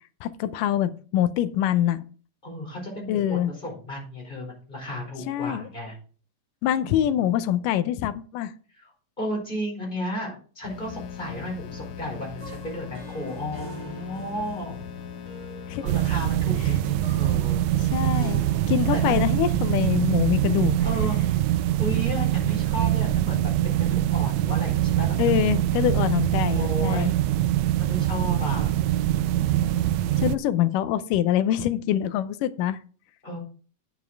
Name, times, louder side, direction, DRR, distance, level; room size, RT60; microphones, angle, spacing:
voice 1, 0.2-2.0 3.1-3.5 5.3-5.7 6.6-8.5 15.7-15.8 16.7-16.8 17.8-20.8 25.2-27.2 30.2-32.8, left 11 dB, 80° left, 13 dB, 2.3 m, -24 dB
voice 2, 2.4-6.0 6.8-7.0 8.7-8.9 9.2-14.8 15.8-17.6 18.9-19.2 20.8-21.1 21.8-25.2 26.5-27.1 27.8-28.7 29.4-29.9 33.2-33.4, equal, 15° left, -1 dB, 4.6 m, -34 dB
sound 1, 10.6-16.3, left 7 dB, 60° left, 2.1 m, -39 dB
sound 2, 11.6-19.6, equal, 15° right, 2.7 m, -43 dB
sound 3, 15.9-30.4, right 13 dB, 90° right, 1.5 m, -23 dB
9.2 x 7.0 x 4.5 m, 0.40 s
omnidirectional pair, 3.8 m